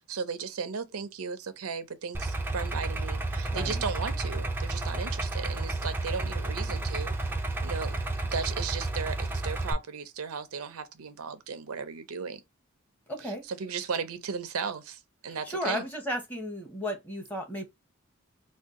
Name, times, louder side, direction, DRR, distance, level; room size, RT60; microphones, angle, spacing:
voice 1, 0.1-7.2 7.6-7.9 8.3-12.4 13.2-15.8, right 5 dB, 90° right, 0.5 m, -36 dB
Idling, 2.1-9.7, right 2 dB, 10° right, 0.3 m, -31 dB
voice 2, 3.5-3.8 13.1-13.4 15.2-17.6, equal, 10° left, 0.8 m, -34 dB
2.7 x 2.2 x 3.5 m
head